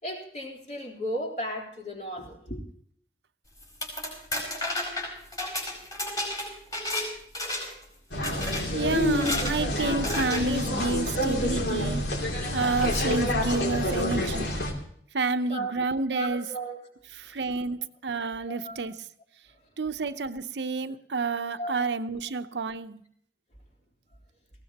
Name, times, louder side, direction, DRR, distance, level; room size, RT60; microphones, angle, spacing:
voice 1, 0.0-2.6 15.5-15.7 16.1-16.8 18.4-18.8 21.6-21.9, right 1 dB, 40° left, 3.6 m, -35 dB
sound 1, 3.6-7.1 7.3-7.8 8.2-8.6 9.1-9.5 10.0-10.4, left 1 dB, 20° left, 4.9 m, -32 dB
sound 2, 8.1-14.7, left 1 dB, 75° left, 2.8 m, -28 dB
voice 2, 8.7-12.1 12.5-14.5 15.1-16.5 17.1-19.1 19.8-23.0, right 3 dB, 85° right, 0.8 m, -29 dB
19.5 x 16.5 x 2.9 m
head